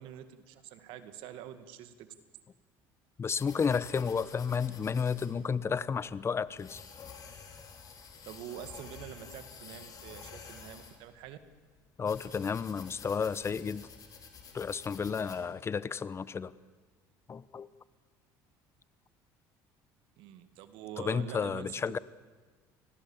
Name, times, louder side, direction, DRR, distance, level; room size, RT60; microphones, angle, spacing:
voice 1, 0.0-2.1 8.3-11.4 20.2-22.0, right 11 dB, 75° right, 10 dB, 2.0 m, -46 dB
voice 2, 3.2-6.8 12.0-13.9 14.5-16.5 17.3-17.7 21.0-22.0, left 6 dB, 30° left, 18 dB, 0.9 m, -32 dB
sound 1, 3.4-15.4, left 6 dB, 45° left, 4.6 m, -50 dB
29.5 x 20.5 x 7.3 m, 1.4 s
supercardioid pair, 95°, 9 cm